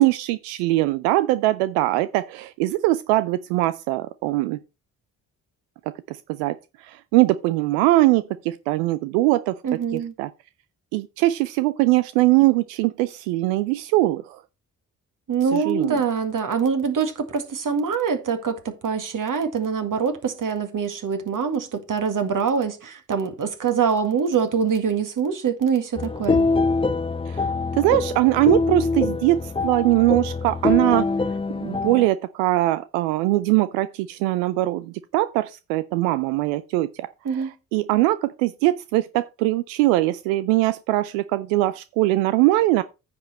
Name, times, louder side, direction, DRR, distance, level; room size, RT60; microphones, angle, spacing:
voice 1, 0.0-4.6 6.1-9.5 9.9-10.3 10.9-14.4 15.5-16.0 27.3-27.5 27.7-31.1 31.6-37.1 37.3-42.8, right 17 dB, 80° right, 0.5 m, -21 dB
voice 2, 9.6-10.1 15.3-26.5 37.3-37.5, right 6 dB, 50° right, 1.9 m, -24 dB
sound 1, 26.0-32.1, left 3 dB, 15° left, 0.6 m, -24 dB
9.7 x 6.0 x 4.2 m
hypercardioid pair, 45°, 41 cm